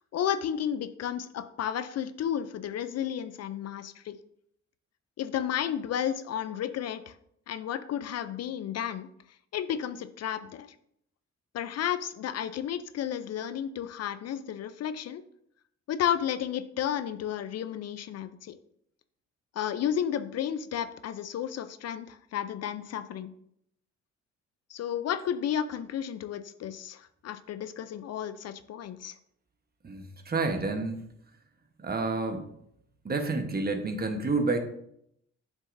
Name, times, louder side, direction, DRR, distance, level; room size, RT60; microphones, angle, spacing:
voice 1, 0.1-4.2 5.2-7.2 7.5-9.1 9.5-10.7 11.5-15.2 15.9-18.5 19.6-23.3 24.7-29.2, left 9 dB, 55° left, 12 dB, 0.5 m, -32 dB
voice 2, 29.8-31.0 31.8-32.5 33.0-34.6, right 3 dB, 30° right, 6 dB, 1.1 m, -29 dB
7.7 x 6.2 x 2.6 m, 0.72 s
cardioid pair, 90°, 30 cm